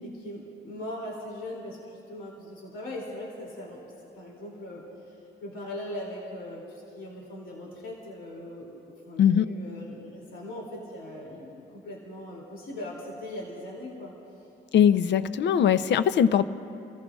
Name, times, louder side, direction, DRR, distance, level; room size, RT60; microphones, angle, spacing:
voice 1, 0.0-3.8 4.1-14.1, left 1 dB, 80° left, -3 dB, 2.7 m, -40 dB
voice 2, 9.2-9.5 14.7-16.4, left 8 dB, 65° left, 14 dB, 0.6 m, -21 dB
30.0 x 15.0 x 2.4 m, 2.8 s
cardioid pair, 90°, 20 cm